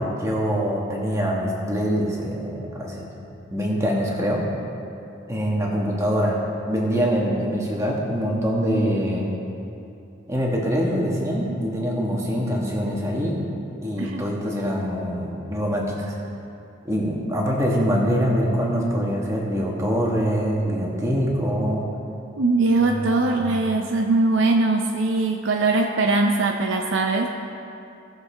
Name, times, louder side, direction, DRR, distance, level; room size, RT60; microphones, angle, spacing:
voice 1, 0.0-3.1 3.5-4.4 5.3-6.4 6.7-9.3 10.3-13.4 13.8-16.1 16.8-21.9 22.9-23.5, equal, 15° right, -3 dB, 1.5 m, -24 dB
voice 2, 22.4-27.3, right 3 dB, 70° right, 2 dB, 0.6 m, -21 dB
17.5 x 6.8 x 3.4 m, 2.8 s
head